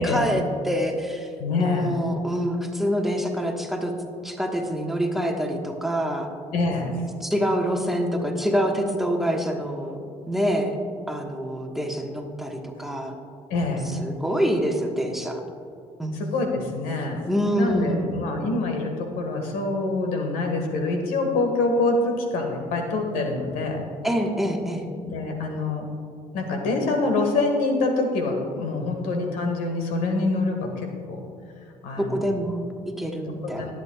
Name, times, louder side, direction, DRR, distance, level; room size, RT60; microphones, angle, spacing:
voice 1, 0.0-1.3 1.6-3.9 4.2-6.3 7.2-10.0 10.3-10.8 11.1-13.1 14.0-15.4 16.0-16.1 17.3-18.2 24.0-24.8 32.0-33.7, equal, ahead, 1 dB, 1.3 m, -26 dB
voice 2, 1.4-1.9 6.5-6.9 13.5-13.9 16.1-17.2 17.6-23.8 25.0-25.9 26.3-31.2 31.8-32.2 33.4-33.7, left 3 dB, 85° left, 3 dB, 1.6 m, -25 dB
18.5 x 8.3 x 2.3 m, 2.4 s
cardioid pair, 85°, 14 cm